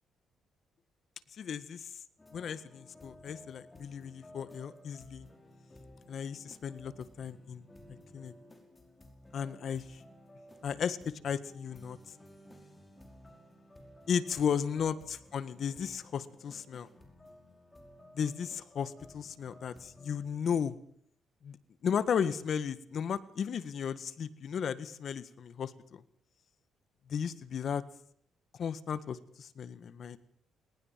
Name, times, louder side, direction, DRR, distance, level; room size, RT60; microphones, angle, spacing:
voice 1, 1.4-1.9 2.3-5.3 6.1-6.9 7.2-7.6 8.1-8.3 9.3-10.0 10.6-12.0 14.1-16.9 18.1-20.7 21.4-21.6 21.8-26.0 27.1-27.8 28.6-30.2, left 7 dB, 60° left, 15 dB, 1.6 m, -35 dB
sound 1, 2.2-20.7, left 1 dB, 20° left, 5.5 m, -56 dB
19.5 x 19.0 x 7.5 m, 0.64 s
cardioid pair, 90°, 0 cm